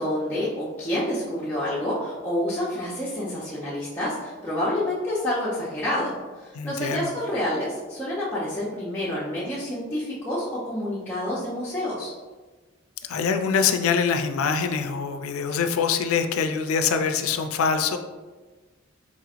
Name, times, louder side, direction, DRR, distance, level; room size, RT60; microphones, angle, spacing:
voice 1, 0.0-12.1, left 1 dB, 10° left, -10 dB, 0.6 m, -28 dB
voice 2, 6.5-7.1 13.1-18.0, left 6 dB, 90° left, 7 dB, 0.4 m, -24 dB
4.1 x 3.0 x 2.4 m, 1.3 s
head